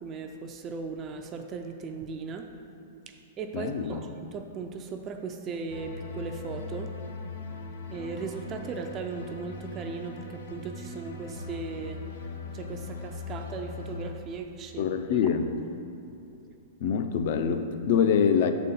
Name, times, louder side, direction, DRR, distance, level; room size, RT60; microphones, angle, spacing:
voice 1, 0.0-2.5 3.1-6.9 7.9-12.3 12.5-14.9, right 4 dB, 20° right, 4 dB, 0.3 m, -37 dB
voice 2, 3.5-4.0 14.8-15.5 16.8-18.5, left 7 dB, 50° left, 8 dB, 0.4 m, -25 dB
sound 1, 5.7-14.1, left 3 dB, 85° left, 0.8 m, -40 dB
6.5 x 4.1 x 5.4 m, 2.8 s
supercardioid pair, 165°, 0 cm